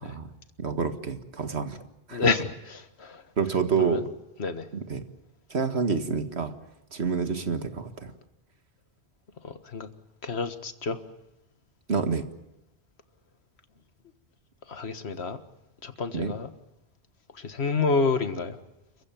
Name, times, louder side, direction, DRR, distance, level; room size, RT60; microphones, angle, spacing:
voice 1, 0.6-1.8 2.1-2.3 3.4-4.0 4.7-5.0 5.5-6.5 6.9-8.1 11.9-12.3 16.1-16.3, right 5 dB, 90° right, 2.0 m, -28 dB
voice 2, 2.1-3.2 3.8-4.0 4.4-4.7 9.4-9.9 10.2-11.0 14.7-15.4 15.8-16.5 17.4-18.6, left 4 dB, 80° left, 1.8 m, -28 dB
29.0 x 15.5 x 9.1 m
omnidirectional pair, 1.1 m